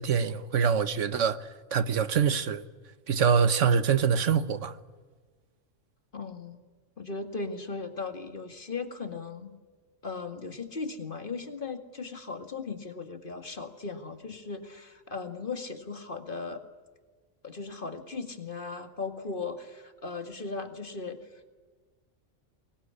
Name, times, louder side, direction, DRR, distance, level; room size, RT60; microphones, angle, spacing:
voice 1, 0.0-2.6 3.1-4.8, right 6 dB, 75° right, 1.4 m, -25 dB
voice 2, 6.1-6.6 7.0-9.6 10.0-16.6 17.4-21.5, left 4 dB, 45° left, 2.2 m, -37 dB
24.5 x 21.0 x 9.8 m
omnidirectional pair, 1.3 m